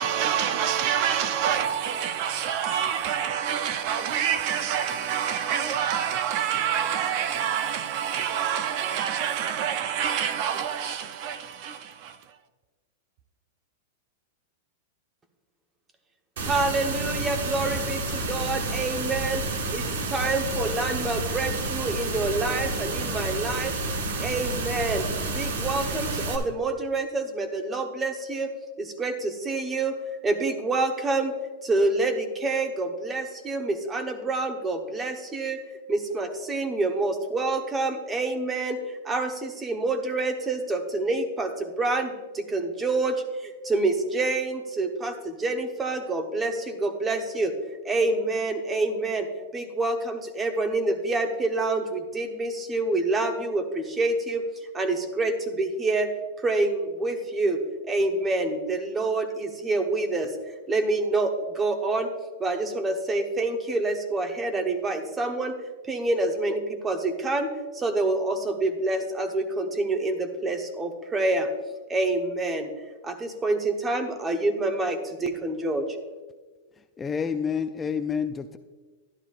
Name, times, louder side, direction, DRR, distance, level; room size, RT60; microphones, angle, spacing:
voice 1, 0.0-12.2, right 9 dB, 45° right, 0.5 m, -27 dB
voice 2, 16.4-19.4 19.7-23.7 24.2-25.1 25.3-28.5 28.8-30.0 30.2-31.4 31.6-35.6 35.9-47.5 47.8-54.4 54.7-56.1 56.4-57.6 57.8-60.3 60.7-62.1 62.4-65.6 65.9-71.5 71.9-72.7 73.0-76.0, right 2 dB, 15° right, 0.9 m, -27 dB
sound 1, 16.4-26.4, right 2 dB, 75° right, 1.4 m, -30 dB
voice 3, 77.0-78.6, left 6 dB, 15° left, 0.3 m, -28 dB
12.0 x 11.0 x 2.4 m
supercardioid pair, 145°, 0 cm